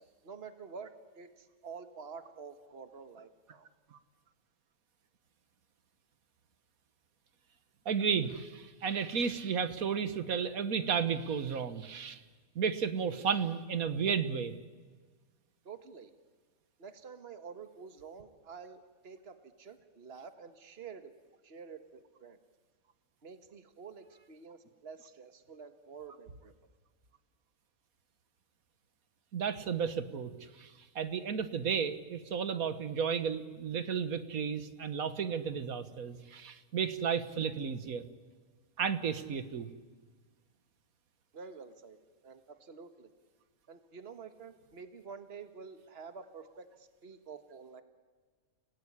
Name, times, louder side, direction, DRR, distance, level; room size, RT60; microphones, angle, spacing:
voice 1, 0.0-3.7 15.7-16.1 16.8-21.1 21.4-22.4 23.2-26.5 41.3-42.0 42.2-43.1 43.7-47.8, right 5 dB, 45° right, 9 dB, 1.7 m, -49 dB
voice 2, 7.9-12.2 12.6-14.5 29.3-38.0 38.8-39.7, right 6 dB, 80° right, 12 dB, 1.7 m, -33 dB
30.0 x 18.0 x 10.0 m, 1.5 s
omnidirectional pair, 1.5 m